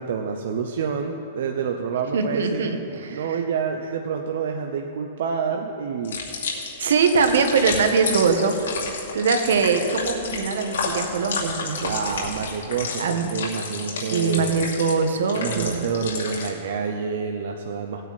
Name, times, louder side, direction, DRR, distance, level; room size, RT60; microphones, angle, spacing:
voice 1, 0.0-2.7 3.1-6.2 11.9-14.5 15.3-18.1, right 6 dB, 65° right, 3 dB, 0.8 m, -28 dB
voice 2, 2.1-3.4 6.8-8.8 9.1-11.9 13.0-13.3 14.0-15.9, right 5 dB, 85° right, 6 dB, 1.3 m, -22 dB
sound 1, 6.0-16.5, left 4 dB, 85° left, 2.4 m, -31 dB
17.5 x 9.0 x 4.2 m, 2.5 s
hypercardioid pair, 160°, 0 cm